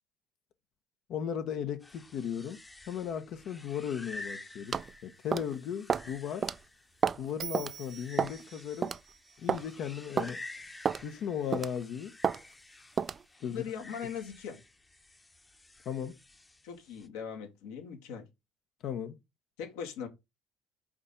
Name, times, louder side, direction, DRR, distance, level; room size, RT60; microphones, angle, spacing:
voice 1, 1.1-2.6 2.9-6.5 7.2-8.9 9.4-10.4 11.0-12.1 13.4-13.6 15.8-16.2 18.8-19.2, left 8 dB, 60° left, 0.9 m, -36 dB
sound 1, 1.8-17.1, left 2 dB, 15° left, 0.9 m, -50 dB
sound 2, 4.7-4.9 5.3-5.5 5.9-6.1 6.4-6.6 7.0-7.3 7.5-7.7 8.2-8.4 8.8-9.0 9.5-9.7 10.2-10.3 10.9-11.0 11.5-11.8 12.2-12.4 13.0-13.2, right 6 dB, 35° right, 0.4 m, -30 dB
Bell, 7.4-10.6, right 10 dB, 55° right, 0.9 m, -47 dB
voice 2, 13.4-14.6 16.6-18.2 19.6-20.1, left 7 dB, 80° left, 2.1 m, -40 dB
4.9 x 4.2 x 5.1 m
supercardioid pair, 80°, 0 cm